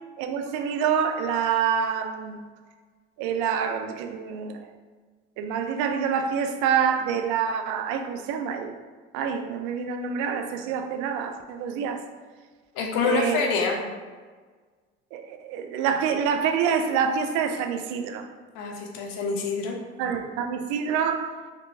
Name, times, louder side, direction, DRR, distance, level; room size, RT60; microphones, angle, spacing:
voice 1, 0.2-2.4 3.2-4.6 5.4-8.7 9.1-12.0 13.0-13.4 15.1-18.3 20.0-21.4, right 7 dB, 80° right, 6 dB, 0.5 m, -26 dB
voice 2, 12.7-13.8 18.5-19.8, left 4 dB, 85° left, 2 dB, 0.7 m, -26 dB
4.3 x 3.1 x 2.7 m, 1.5 s
supercardioid pair, 65°, 29 cm